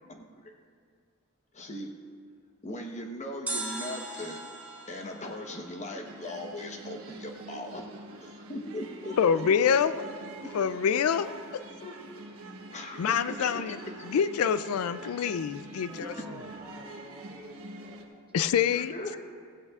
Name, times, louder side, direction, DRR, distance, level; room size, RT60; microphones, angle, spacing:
voice 1, 0.0-0.5 1.5-1.9 2.6-4.4 4.9-7.8 8.2-10.1 10.4-10.5 11.8-11.9 12.7-14.2 18.7-19.2, left 1 dB, 35° left, 3 dB, 1.0 m, -39 dB
sound 1, 3.5-6.5 6.8-6.9, right 2 dB, 5° right, 2.0 m, -39 dB
sound 2, 6.0-18.0, right 2 dB, 70° right, 1.2 m, -45 dB
voice 2, 9.2-9.9 10.5-11.6 13.0-13.8 14.1-16.1 18.3-19.2, left 7 dB, 90° left, 14 dB, 0.4 m, -26 dB
voice 3, 15.8-18.2 18.6-18.7, equal, 25° right, 3 dB, 0.8 m, -48 dB
16.0 x 15.5 x 2.4 m, 2.1 s
head